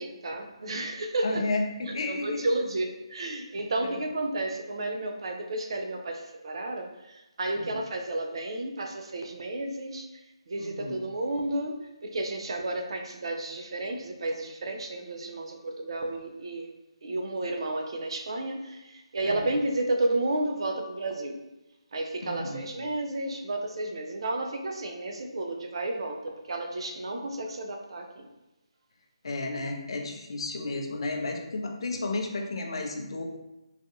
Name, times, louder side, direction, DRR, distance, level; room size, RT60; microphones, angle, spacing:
voice 1, 0.0-1.5 1.9-10.1 10.5-16.7 17.0-21.4 21.9-28.3, right 2 dB, 55° right, 3 dB, 0.4 m, -32 dB
voice 2, 1.2-2.5 3.8-4.0 7.5-7.8 10.6-11.0 19.2-19.5 22.2-22.6 29.2-33.2, left 2 dB, 55° left, 2 dB, 0.5 m, -32 dB
2.4 x 2.3 x 2.7 m, 0.98 s
figure-of-eight pair, 150°, 3 cm